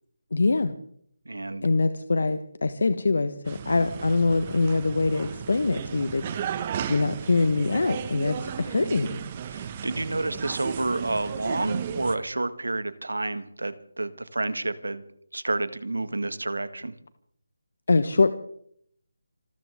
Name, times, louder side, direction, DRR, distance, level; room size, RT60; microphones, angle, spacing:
voice 1, 0.3-0.8 1.6-9.2 17.9-18.3, left 3 dB, 65° left, 11 dB, 1.2 m, -24 dB
voice 2, 1.3-1.7 9.5-15.0 15.3-16.9, right 2 dB, 80° right, 12 dB, 1.8 m, -29 dB
sound 1, 3.5-12.2, right 8 dB, 30° right, 1.5 m, -35 dB
27.0 x 14.5 x 3.6 m, 0.67 s
figure-of-eight pair, 155°, 0 cm